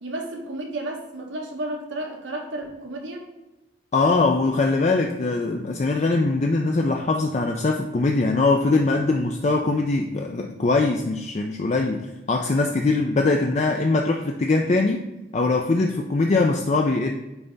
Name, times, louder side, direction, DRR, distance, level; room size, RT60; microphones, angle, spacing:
voice 1, 0.0-3.2, right 1 dB, 85° right, 1 dB, 1.3 m, -32 dB
voice 2, 3.9-15.1 15.3-17.1, left 3 dB, 35° left, 3 dB, 0.4 m, -22 dB
9.0 x 3.4 x 3.9 m, 0.99 s
head